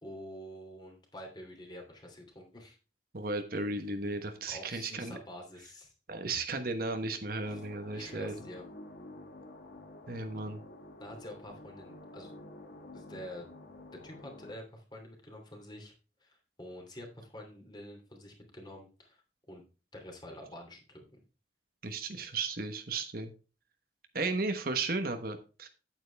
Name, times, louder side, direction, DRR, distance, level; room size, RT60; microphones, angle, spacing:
voice 1, 0.0-2.8 4.5-5.9 7.5-7.6 7.9-8.6 11.0-12.3 12.9-13.5 14.0-15.9 16.2-19.6 19.9-21.2, left 1 dB, 25° left, 2 dB, 2.8 m, -47 dB
voice 2, 3.1-5.2 6.1-8.3 10.1-10.6 21.8-23.3 24.1-25.7, right 3 dB, 55° right, 7 dB, 1.2 m, -35 dB
sound 1, 7.4-14.5, left 1 dB, 60° left, 1.5 m, -50 dB
9.4 x 8.8 x 3.4 m, 0.34 s
head